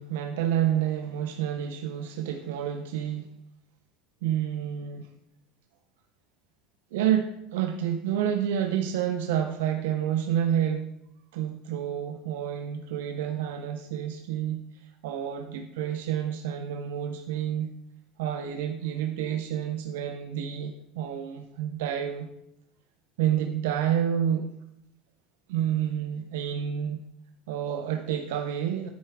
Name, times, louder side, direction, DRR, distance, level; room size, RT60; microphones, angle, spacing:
voice 1, 0.0-3.3 4.2-5.1 6.9-10.9 11.3-17.7 18.2-22.3 23.2-24.5 25.5-27.0 27.5-28.9, right 10 dB, 85° right, 5 dB, 0.5 m, -29 dB
9.3 x 4.5 x 3.5 m, 0.81 s
supercardioid pair, 115°, 0 cm